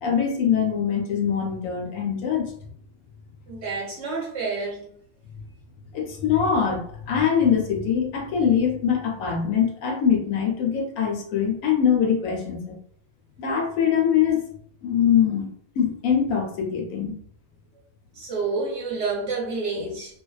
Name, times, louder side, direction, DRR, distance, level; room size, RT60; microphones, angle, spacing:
voice 1, 0.0-2.5 5.9-12.7 13.4-14.5 14.8-15.5 15.8-17.2, left 7 dB, 80° left, 1 dB, 1.1 m, -23 dB
voice 2, 3.5-4.9 18.1-20.2, right 4 dB, 60° right, -4 dB, 0.8 m, -29 dB
2.5 x 2.2 x 2.3 m, 0.63 s
omnidirectional pair, 1.6 m